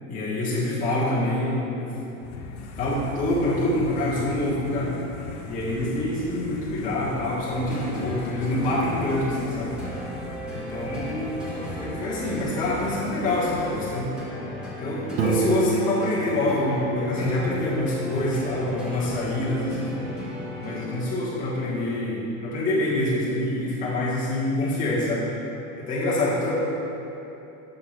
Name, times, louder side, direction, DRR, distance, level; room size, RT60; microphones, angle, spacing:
voice 1, 0.1-1.9 2.1-2.2 2.8-4.9 5.5-9.8 10.5-14.1 14.8-19.9 20.6-25.3 25.8-26.5, left 1 dB, 20° left, -8 dB, 1.2 m, -26 dB
sound 1, 2.2-14.0, left 4 dB, 55° left, 0.8 m, -40 dB
sound 2, 7.5-21.3, equal, ahead, 0.8 m, -36 dB
Piano, 15.2-17.9, right 4 dB, 55° right, 0.9 m, -29 dB
6.7 x 3.7 x 5.8 m, 3.0 s
supercardioid pair, 160°, 42 cm